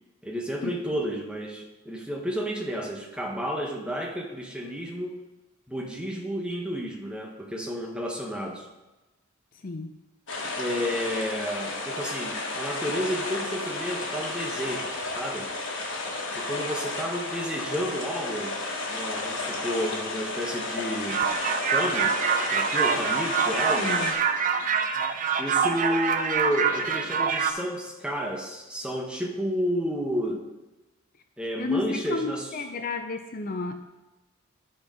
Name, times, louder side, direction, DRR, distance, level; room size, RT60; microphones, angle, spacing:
voice 1, 0.2-5.2 5.7-8.7 10.6-15.5 16.3-18.6 18.9-21.3 21.7-22.2 22.5-23.9 25.4-30.5 31.4-32.5, equal, 5° right, 0 dB, 1.0 m, -31 dB
voice 2, 9.6-10.0 23.8-24.1 31.6-33.8, left 3 dB, 45° left, 7 dB, 0.5 m, -31 dB
sound 1, 10.3-24.1, left 2 dB, 65° left, 1.6 m, -32 dB
sound 2, 21.1-27.5, right 6 dB, 40° right, 0.6 m, -25 dB
12.5 x 4.5 x 4.8 m, 1.1 s
head